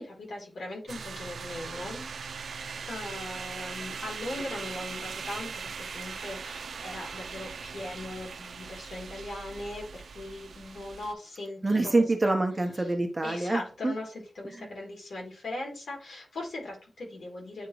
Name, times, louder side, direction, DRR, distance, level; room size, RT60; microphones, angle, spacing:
voice 1, 0.0-2.0 2.9-11.9 12.2-12.4 13.2-17.7, left 2 dB, 85° left, -2 dB, 3.6 m, -39 dB
sound 1, 0.9-11.1, right 5 dB, 70° right, 0.5 m, -40 dB
voice 2, 11.6-13.9 14.4-14.7, right 2 dB, 20° right, 4 dB, 1.1 m, -26 dB
9.2 x 3.7 x 3.2 m, 0.34 s
wide cardioid pair, 135°, 0 cm